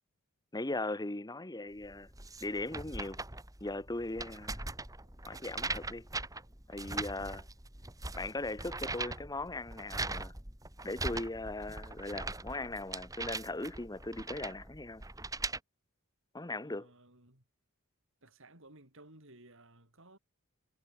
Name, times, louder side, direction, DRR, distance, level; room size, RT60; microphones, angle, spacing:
voice 1, 0.5-2.1 2.4-3.2 3.6-4.6 5.3-6.1 6.7-7.5 8.2-10.3 10.8-15.0 16.3-16.9, left 2 dB, 20° left, 1.2 m, -39 dB
sound 1, 1.8-15.6, right 3 dB, 15° right, 2.7 m, -41 dB
voice 2, 16.6-17.5 18.2-20.2, right 2 dB, 60° right, 7.5 m, -58 dB
head